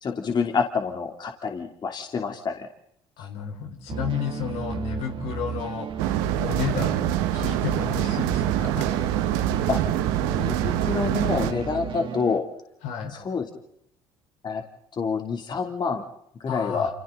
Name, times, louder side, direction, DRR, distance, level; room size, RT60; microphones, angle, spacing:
voice 1, 0.0-2.7 9.7-9.8 10.3-12.4 13.1-13.5 14.4-14.6 15.0-16.0 16.4-16.9, left 5 dB, 40° left, 3 dB, 3.1 m, -27 dB
voice 2, 3.2-8.9 12.8-13.2 16.5-16.9, left 7 dB, 75° left, 3 dB, 4.4 m, -32 dB
sound 1, 3.9-12.4, right 7 dB, 50° right, 2.6 m, -34 dB
sound 2, 6.0-11.5, right 12 dB, 85° right, 1.6 m, -25 dB
28.0 x 28.0 x 4.0 m, 0.72 s
supercardioid pair, 85°, 11 cm